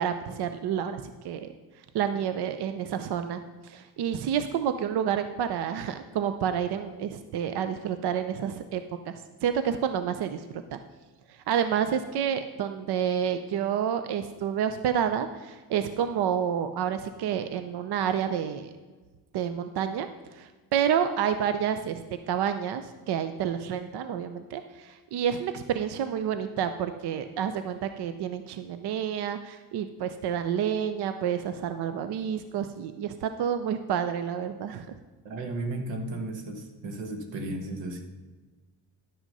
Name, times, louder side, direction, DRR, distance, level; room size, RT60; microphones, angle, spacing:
voice 1, 0.0-1.5 1.9-10.4 10.7-10.8 11.3-18.7 19.3-22.0 22.3-35.0, right 8 dB, 60° right, 10 dB, 0.7 m, -29 dB
voice 2, 35.2-38.0, right 2 dB, 90° right, 5 dB, 1.5 m, -34 dB
11.0 x 6.2 x 5.4 m, 1.3 s
cardioid pair, 100°, 43 cm